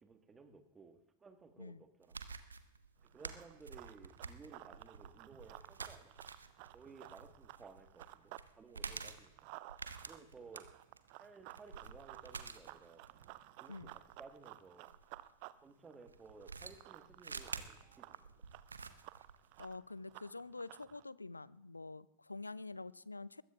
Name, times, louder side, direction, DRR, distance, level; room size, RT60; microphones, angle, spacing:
voice 1, 0.0-2.1 3.1-6.1 6.7-9.5 10.1-10.7 11.2-13.1 13.6-13.9 14.2-14.9 15.6-18.3, right 4 dB, 15° right, 7 dB, 1.6 m, -57 dB
sound 1, 2.0-15.2 16.1-19.7, right 4 dB, 75° right, 0.8 m, -49 dB
Run, 3.0-8.5 8.8-21.0, right 18 dB, 45° right, 0.5 m, -55 dB
voice 2, 19.6-23.4, left 3 dB, 80° left, 21 dB, 0.4 m, -47 dB
23.0 x 20.5 x 2.4 m, 0.88 s
figure-of-eight pair, 90°, 0 cm